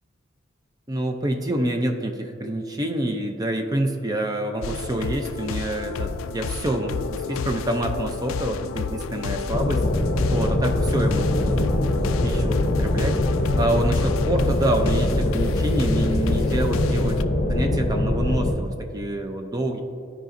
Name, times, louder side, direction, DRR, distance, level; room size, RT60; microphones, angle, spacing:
voice 1, 0.9-9.8 10.3-11.8 12.2-13.2 13.6-17.2 17.5-19.8, right 1 dB, 20° right, 5 dB, 0.5 m, -27 dB
sound 1, 4.6-17.2, left 5 dB, 90° left, 0.3 m, -31 dB
sound 2, 9.5-18.5, left 1 dB, 40° left, 0.6 m, -23 dB
14.5 x 4.9 x 2.6 m, 2.5 s
head